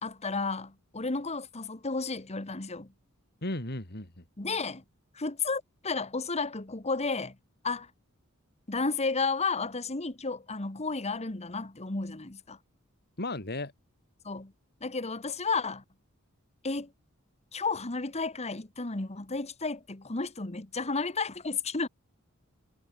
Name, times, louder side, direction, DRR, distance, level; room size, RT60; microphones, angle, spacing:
voice 1, 0.0-2.9 4.4-4.8 5.1-7.4 7.6-7.9 8.7-12.6 14.2-14.5 14.8-15.8 16.6-16.9 17.5-21.9, left 4 dB, 30° left, 1.5 m, -32 dB
voice 2, 3.4-4.2 13.2-13.7, left 2 dB, 50° left, 3.5 m, -35 dB
head